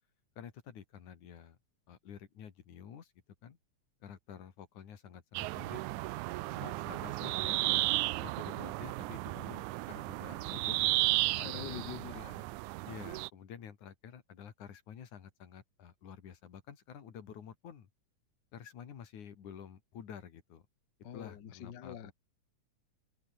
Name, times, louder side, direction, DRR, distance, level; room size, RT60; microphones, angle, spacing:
voice 1, 0.4-1.6 1.9-3.1 3.4-3.6 4.0-5.8 6.6-11.0 11.4-11.8 12.8-17.9 18.5-20.6 21.1-22.1, left 8 dB, 70° left, 3.8 m, -50 dB
sound 1, 5.4-13.3, right 19 dB, 80° right, 2.0 m, -34 dB
voice 2, 11.4-12.5 21.0-22.1, left 9 dB, 50° left, 1.3 m, -45 dB
omnidirectional pair, 3.5 m